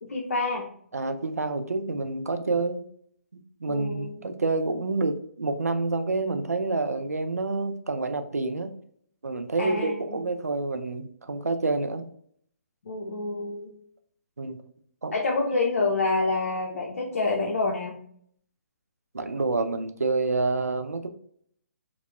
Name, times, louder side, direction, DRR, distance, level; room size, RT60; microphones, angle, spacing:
voice 1, 0.0-0.7 3.7-4.2 9.6-10.2 12.9-13.7 15.1-18.0, left 3 dB, 70° left, 0 dB, 0.5 m, -27 dB
voice 2, 0.9-2.8 3.6-8.7 9.2-12.1 14.4-14.6 15.0-15.1 19.1-21.1, right 3 dB, 90° right, 8 dB, 0.4 m, -28 dB
2.9 x 2.0 x 2.9 m, 0.64 s
figure-of-eight pair, 135°, 8 cm